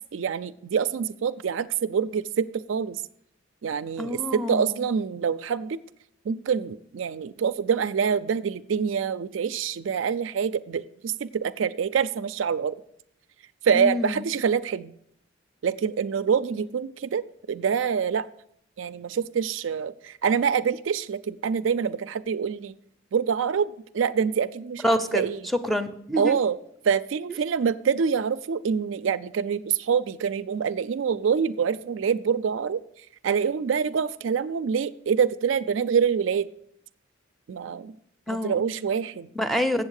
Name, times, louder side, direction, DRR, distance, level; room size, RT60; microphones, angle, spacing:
voice 1, 0.1-3.0 3.6-5.8 6.3-12.7 13.6-14.9 15.6-18.3 18.8-22.7 23.1-25.4 26.2-26.6 26.8-32.8 33.2-36.5 37.5-37.9 38.3-39.3, right 6 dB, 70° right, 12 dB, 0.4 m, -26 dB
voice 2, 4.0-4.8 13.7-14.2 24.8-25.3 25.6-26.4 38.3-38.6 39.4-39.8, equal, ahead, 8 dB, 0.5 m, -27 dB
8.1 x 7.2 x 6.4 m, 0.69 s
head